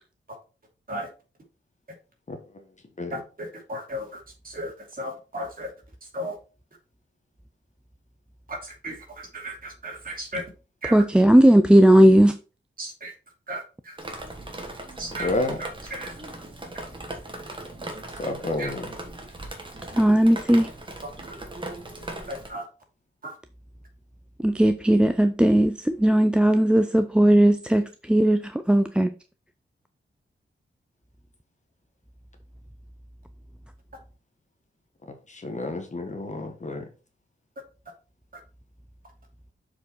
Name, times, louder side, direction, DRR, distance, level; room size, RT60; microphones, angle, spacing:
voice 1, 3.1-5.7 6.0-6.4 8.5-10.4 10.8-11.0 12.8-13.1 13.5-14.0 15.0-15.3 15.6-16.1 18.6-18.7 21.0-21.1 22.3-22.6 23.2-23.3, equal, 45° right, 2.7 m, -35 dB
voice 2, 10.9-12.3 20.0-20.7 24.4-28.4 28.7-29.1, right 1 dB, 5° right, 0.4 m, -17 dB
Drip, 14.0-22.5, right 2 dB, 25° right, 1.6 m, -38 dB
voice 3, 15.2-15.6 18.2-18.9 35.3-36.9, left 2 dB, 35° left, 1.3 m, -30 dB
7.0 x 4.8 x 4.4 m
wide cardioid pair, 155°, 20 cm